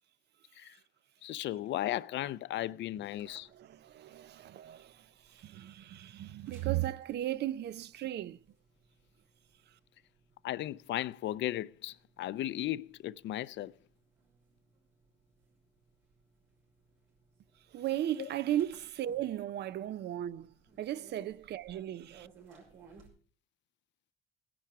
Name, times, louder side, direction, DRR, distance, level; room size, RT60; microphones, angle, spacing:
voice 1, 1.2-3.5 10.4-13.7 18.2-18.3, left 14 dB, 70° left, 0.5 m, -36 dB
sound 1, 3.2-23.1, right 5 dB, 85° right, 5.9 m, -63 dB
voice 2, 3.3-8.4 17.7-20.5 20.8-22.3, right 13 dB, 60° right, 0.5 m, -36 dB
17.0 x 10.5 x 4.7 m
cardioid pair, 130°, 20 cm